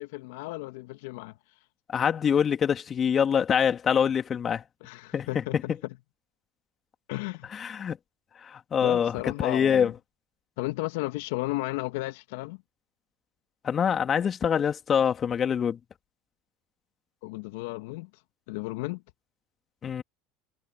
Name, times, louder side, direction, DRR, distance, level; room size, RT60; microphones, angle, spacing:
voice 1, 0.0-1.3 4.8-5.7 7.1-7.5 8.8-9.9 10.6-12.6 17.2-18.1 18.5-19.0, left 21 dB, 70° left, 2.0 m, -34 dB
voice 2, 1.9-4.6 5.1-5.6 7.5-8.0 8.4-9.9 13.6-15.8 19.8-20.0, left 7 dB, 35° left, 2.6 m, -25 dB
hypercardioid pair, 80°, 0 cm